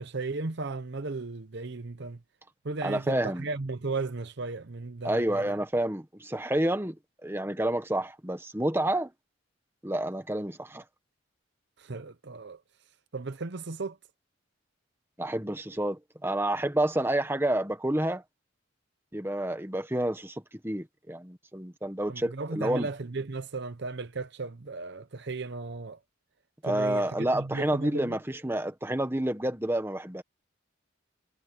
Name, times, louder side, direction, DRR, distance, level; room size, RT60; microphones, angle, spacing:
voice 1, 0.0-2.2 2.6-5.6 11.8-12.6 13.1-14.0 22.1-26.0 26.6-28.2, right 3 dB, 55° right, 0.8 m, -35 dB
voice 2, 2.8-3.5 5.0-6.9 7.2-9.1 9.8-10.8 15.2-18.2 19.1-22.9 26.6-30.2, right 1 dB, 10° right, 1.4 m, -29 dB
head